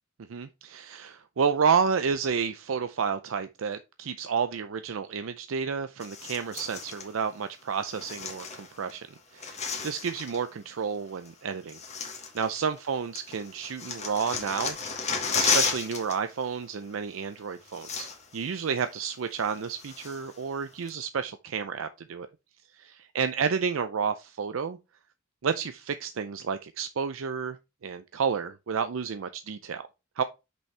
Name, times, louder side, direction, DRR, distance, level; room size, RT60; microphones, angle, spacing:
voice 1, 0.3-9.1 9.3-11.8 12.3-14.8 15.3-22.3 22.7-24.8 25.4-27.6 27.8-29.8 30.2-30.3, right 6 dB, 75° right, 0.5 m, -30 dB
sound 1, 6.0-7.1 7.9-8.9 9.2-10.4 11.3-11.4 11.7-12.9 13.2-16.2 16.4-16.6 17.4-17.5 17.7-18.4 18.8-18.9 19.4-20.4 20.9-21.0, left 5 dB, 35° left, 1.5 m, -33 dB
6.2 x 5.5 x 3.3 m
head